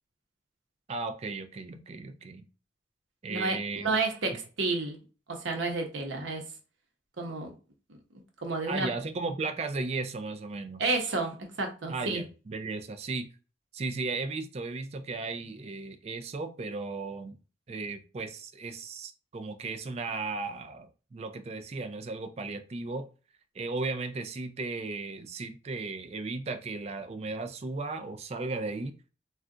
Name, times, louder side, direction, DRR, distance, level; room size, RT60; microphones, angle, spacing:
voice 1, 0.9-2.4 3.2-3.9 8.7-11.0 11.9-13.3 13.7-17.4 17.7-23.1 23.5-28.9, right 3 dB, 35° right, 0.3 m, -35 dB
voice 2, 3.3-5.0 5.3-6.4 7.2-7.5 8.4-8.9 10.8-12.2, right 3 dB, 85° right, 0.8 m, -30 dB
2.4 x 2.1 x 3.6 m
head